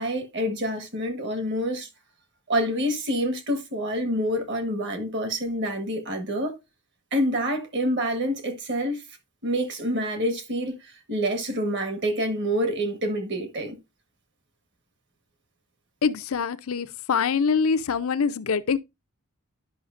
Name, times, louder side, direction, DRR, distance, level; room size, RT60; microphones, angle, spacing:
voice 1, 0.0-1.9 2.5-6.6 7.1-9.0 9.4-10.8 11.1-13.8, equal, 50° right, 1.4 m, -27 dB
voice 2, 16.0-18.8, left 5 dB, 70° left, 0.5 m, -24 dB
11.0 x 5.7 x 2.5 m
head